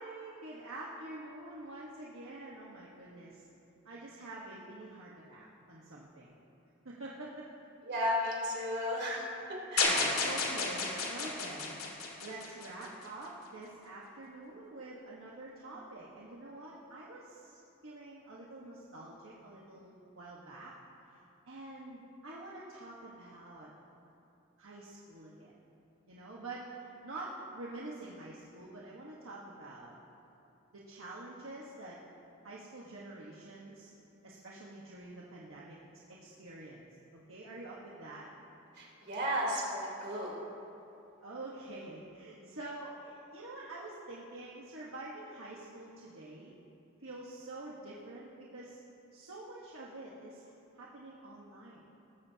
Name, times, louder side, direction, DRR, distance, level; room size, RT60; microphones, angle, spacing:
voice 1, 0.0-3.5 3.8-6.4 6.8-7.5 9.7-9.8 10.2-20.7 21.5-23.7 24.6-25.5 26.1-29.9 30.7-32.0 32.4-33.9 34.2-36.8 37.3-38.3 41.2-46.5 47.0-48.8 49.1-51.9, right 2 dB, 70° right, -5 dB, 1.4 m, -47 dB
voice 2, 7.9-9.3 9.7-10.3 38.8-40.4, equal, 50° right, -5 dB, 3.6 m, -34 dB
sound 1, 9.8-13.1, left 3 dB, 90° left, 2.3 m, -32 dB
19.5 x 14.5 x 2.9 m, 2.8 s
head